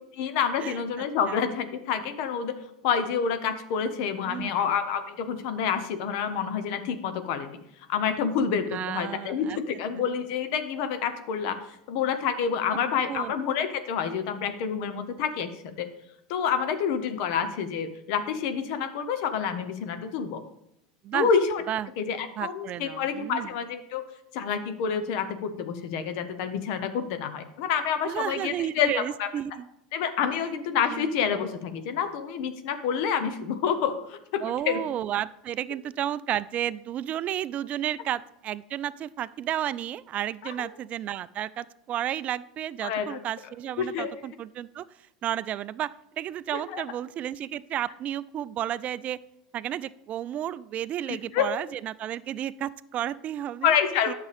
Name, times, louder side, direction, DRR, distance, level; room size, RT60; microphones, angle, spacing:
voice 1, 0.1-7.6 7.9-11.6 11.9-15.9 16.3-20.4 21.1-21.6 22.0-24.1 24.3-29.3 29.9-34.8 40.6-40.7 42.8-43.2 43.8-44.1 46.5-46.8 51.1-51.5 53.6-54.1, left 7 dB, 65° left, 9 dB, 0.9 m, -28 dB
voice 2, 4.2-4.7 8.7-9.6 13.1-13.3 21.0-21.3 21.7-21.9 22.4-23.5 28.0-29.7 30.9-31.1 34.4-44.9 45.2-49.2 49.5-53.7 54.1-54.2, right 11 dB, 40° right, 17 dB, 0.3 m, -32 dB
9.7 x 6.7 x 3.4 m, 0.79 s
hypercardioid pair, 95°, 4 cm